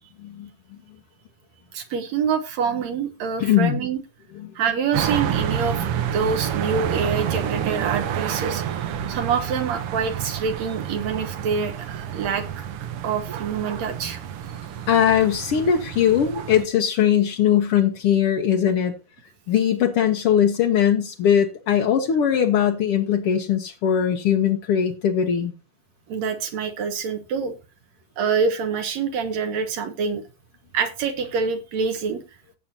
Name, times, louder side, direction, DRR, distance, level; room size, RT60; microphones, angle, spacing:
voice 1, 0.2-0.5 3.4-3.8 4.3-4.5 14.9-18.9 19.5-25.5, left 9 dB, 70° left, 1.4 m, -20 dB
voice 2, 1.7-4.0 4.6-5.9 6.1-8.8 9.1-12.6 13.0-14.2 26.1-27.5 28.2-30.2 30.7-32.2, right 6 dB, 65° right, 2.0 m, -26 dB
sound 1, 4.9-16.6, right 9 dB, 85° right, 1.2 m, -29 dB
17.0 x 7.4 x 2.8 m
omnidirectional pair, 3.8 m